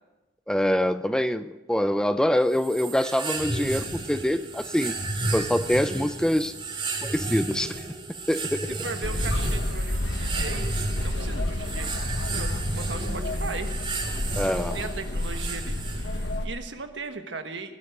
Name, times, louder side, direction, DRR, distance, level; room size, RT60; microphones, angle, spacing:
voice 1, 0.5-4.9 5.3-6.5 7.0-7.8 8.3-8.8 14.4-14.8, equal, 5° left, 11 dB, 0.4 m, -25 dB
sound 1, 2.5-16.4, right 3 dB, 30° right, 2.5 m, -33 dB
voice 2, 8.7-10.7 11.0-13.7 14.4-17.8, right 3 dB, 75° right, 7 dB, 1.5 m, -38 dB
sound 2, 9.0-16.5, left 1 dB, 70° left, 1.2 m, -30 dB
20.0 x 8.7 x 8.0 m, 1.1 s
head